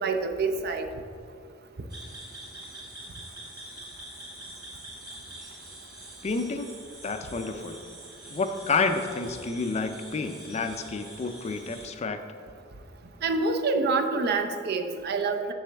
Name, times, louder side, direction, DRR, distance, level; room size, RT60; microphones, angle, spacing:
voice 1, 0.0-0.9 13.2-15.5, right 3 dB, 55° right, 6 dB, 0.5 m, -26 dB
sound 1, 1.9-11.9, right 1 dB, 20° right, 1.4 m, -45 dB
voice 2, 6.2-7.8 8.3-12.2, left 4 dB, 35° left, 8 dB, 0.4 m, -30 dB
7.0 x 6.7 x 3.4 m, 2.4 s
head